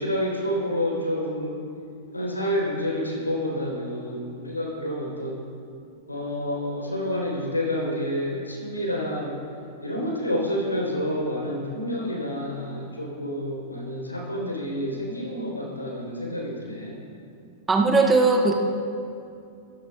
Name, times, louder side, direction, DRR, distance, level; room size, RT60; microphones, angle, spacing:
voice 1, 0.0-1.6 2.1-5.4 6.1-9.3 9.8-17.0, equal, 90° left, -1 dB, 3.9 m, -29 dB
voice 2, 17.7-18.5, right 3 dB, 15° right, 2 dB, 1.3 m, -18 dB
26.0 x 14.0 x 2.5 m, 2.5 s
figure-of-eight pair, 95°, 0 cm